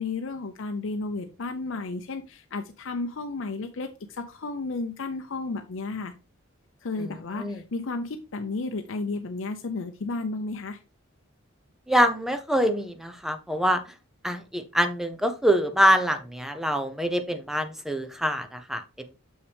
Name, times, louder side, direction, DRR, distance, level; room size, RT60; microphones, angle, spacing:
voice 1, 0.0-6.1 6.8-10.8, left 3 dB, 65° left, 6 dB, 0.6 m, -33 dB
voice 2, 7.0-7.6 11.9-13.8 14.2-19.1, equal, ahead, 8 dB, 0.7 m, -25 dB
6.5 x 5.8 x 3.4 m, 0.31 s
head